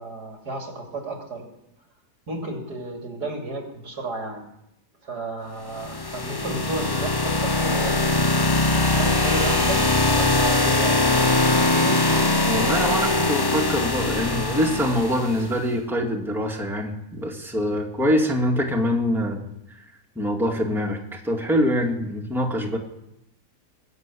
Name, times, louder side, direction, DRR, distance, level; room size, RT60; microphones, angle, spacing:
voice 1, 0.0-1.5 2.3-4.5 5.0-8.2 8.6-12.0, right 2 dB, 85° right, 2 dB, 3.3 m, -33 dB
sound 1, 5.7-15.5, left 2 dB, 35° left, 0.3 m, -21 dB
voice 2, 12.5-19.5 19.8-19.9 20.2-22.8, equal, ahead, 0 dB, 1.9 m, -24 dB
20.5 x 7.2 x 8.5 m, 0.84 s
omnidirectional pair, 1.7 m